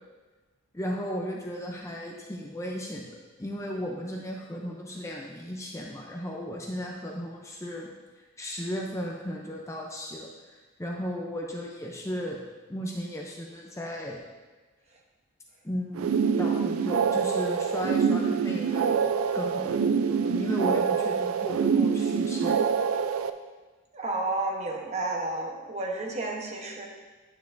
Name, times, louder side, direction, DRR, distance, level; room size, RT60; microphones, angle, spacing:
voice 1, 0.7-7.9 8.2-12.4 12.7-14.2 15.6-22.7, equal, 15° left, -1 dB, 0.6 m, -35 dB
sound 1, 15.9-23.3, right 6 dB, 75° right, 0.4 m, -25 dB
voice 2, 23.9-26.9, right 2 dB, 35° right, 0 dB, 1.0 m, -31 dB
9.2 x 7.0 x 2.6 m, 1.3 s
head